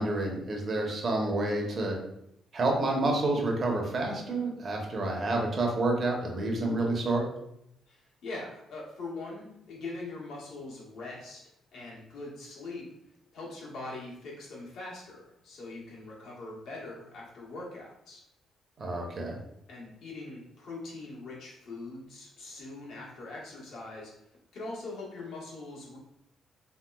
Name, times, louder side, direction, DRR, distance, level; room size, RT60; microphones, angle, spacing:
voice 1, 0.0-2.0 2.5-7.3 18.8-19.4, right 2 dB, 45° right, 0 dB, 0.7 m, -29 dB
voice 2, 7.9-11.4 11.7-12.9 13.3-18.2 19.7-24.1 24.5-26.0, left 2 dB, 75° left, -4 dB, 1.1 m, -42 dB
3.0 x 2.9 x 2.2 m, 0.79 s
cardioid pair, 90°, 0 cm